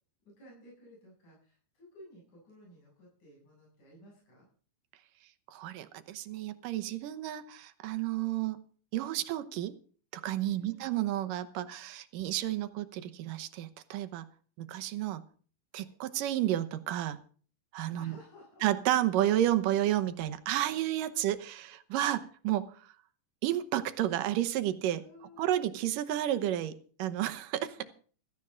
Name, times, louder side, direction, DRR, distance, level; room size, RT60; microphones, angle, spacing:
voice 1, 0.3-4.5 9.0-9.2 10.5-10.9 15.7-15.9 17.9-18.7 21.1-21.2 21.9-22.0 25.0-25.7 27.8-27.9, equal, 65° left, -4 dB, 9.0 m, -56 dB
voice 2, 5.5-8.6 8.9-9.8 10.1-14.3 14.6-15.3 15.7-17.2 17.7-18.2 18.6-22.7 23.4-25.0 25.4-27.8, right 13 dB, 85° right, 10 dB, 2.6 m, -31 dB
16.0 x 15.5 x 3.9 m, 0.42 s
omnidirectional pair, 3.8 m